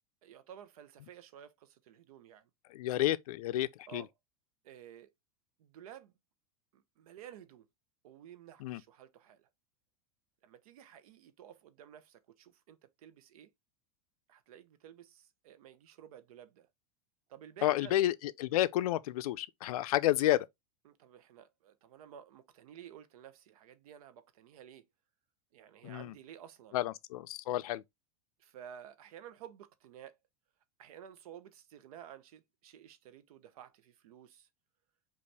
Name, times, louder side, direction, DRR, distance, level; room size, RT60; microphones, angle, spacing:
voice 1, 0.2-2.5 3.9-4.1 4.6-5.1 5.6-6.1 6.7-7.7 8.0-9.5 10.4-13.5 14.3-16.7 17.3-17.9 20.8-24.8 25.5-26.8 28.4-30.2 30.8-34.5, right 9 dB, 75° right, 0.8 m, -53 dB
voice 2, 2.7-4.1 8.6-8.8 17.6-20.5 25.8-26.2 26.7-27.8, left 14 dB, 80° left, 0.5 m, -31 dB
5.2 x 2.5 x 3.3 m
supercardioid pair, 170°, 19 cm